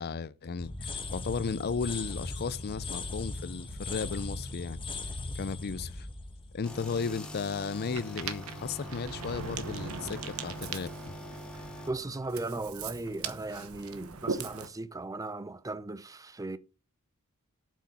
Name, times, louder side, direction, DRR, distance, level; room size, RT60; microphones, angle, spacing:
voice 1, 0.0-4.8 5.3-6.1 6.5-11.1, left 5 dB, 45° left, 0.5 m, -35 dB
sound 1, 0.6-7.4, left 2 dB, 25° left, 1.2 m, -39 dB
sound 2, 6.6-11.9, equal, 5° left, 1.8 m, -44 dB
Ocean, 7.9-14.7, right 5 dB, 75° right, 1.1 m, -40 dB
voice 2, 11.9-16.6, right 2 dB, 15° right, 0.5 m, -37 dB
8.1 x 6.4 x 5.4 m
head